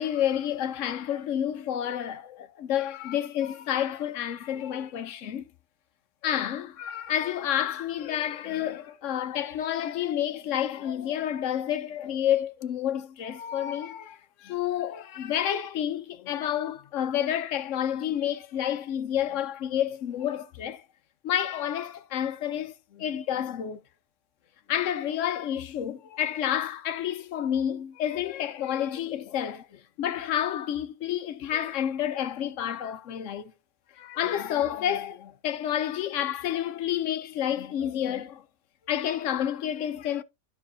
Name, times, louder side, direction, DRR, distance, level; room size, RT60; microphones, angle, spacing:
voice 1, 0.0-5.4 6.2-20.8 21.2-23.8 24.7-33.5 34.0-38.4 38.9-40.2, left 10 dB, 65° left, 0.9 m, -29 dB
12.5 x 4.6 x 2.7 m
omnidirectional pair, 1.5 m